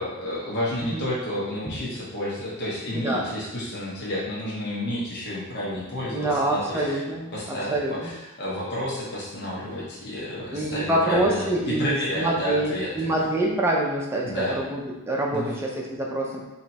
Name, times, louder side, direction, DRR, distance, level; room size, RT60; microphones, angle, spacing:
voice 1, 0.0-7.0 7.3-13.1 14.2-14.6 15.3-15.6, left 1 dB, 50° left, -7 dB, 0.9 m, -30 dB
voice 2, 2.9-3.3 6.1-8.1 10.5-16.4, right 1 dB, 10° right, -2 dB, 0.6 m, -26 dB
3.3 x 2.8 x 4.1 m, 1.0 s
head